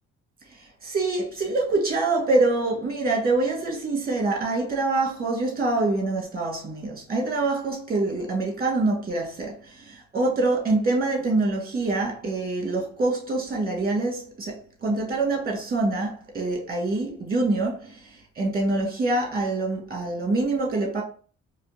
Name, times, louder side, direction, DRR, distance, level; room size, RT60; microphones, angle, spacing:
voice 1, 0.8-18.0 18.4-21.0, right 2 dB, 30° right, 1.9 m, -25 dB
4.2 x 3.2 x 2.8 m
cardioid pair, 90°, 30 cm